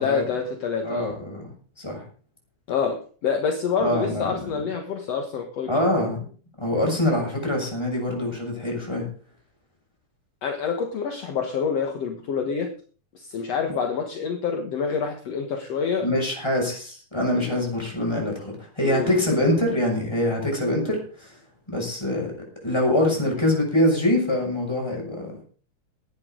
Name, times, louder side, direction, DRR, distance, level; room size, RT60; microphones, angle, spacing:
voice 1, 0.0-1.2 2.7-5.7 10.4-12.7 13.1-16.1 17.4-17.6 18.8-19.2, left 6 dB, 60° left, 4 dB, 2.5 m, -27 dB
voice 2, 0.8-2.0 3.8-4.6 5.7-6.2 6.6-9.1 16.0-21.4 21.7-22.3 22.6-25.3, left 1 dB, 10° left, 0 dB, 6.4 m, -24 dB
18.0 x 11.5 x 3.9 m, 0.39 s
omnidirectional pair, 3.5 m